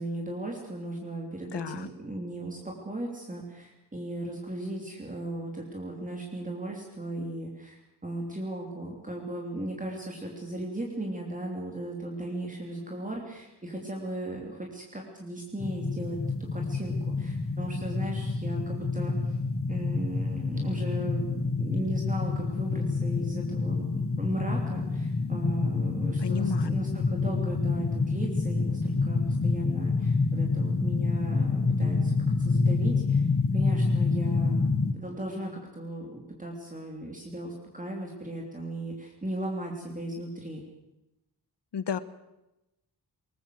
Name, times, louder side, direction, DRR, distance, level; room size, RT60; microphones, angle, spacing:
voice 1, 0.0-16.2 16.5-19.4 19.7-33.2 33.5-40.6, right 1 dB, 20° right, 0 dB, 3.2 m, -36 dB
voice 2, 1.5-1.9 26.2-26.7 41.7-42.0, left 7 dB, 80° left, 14 dB, 1.4 m, -32 dB
sound 1, 15.6-34.9, left 4 dB, 35° left, 1.5 m, -27 dB
21.5 x 19.5 x 7.9 m, 0.94 s
wide cardioid pair, 155°, 41 cm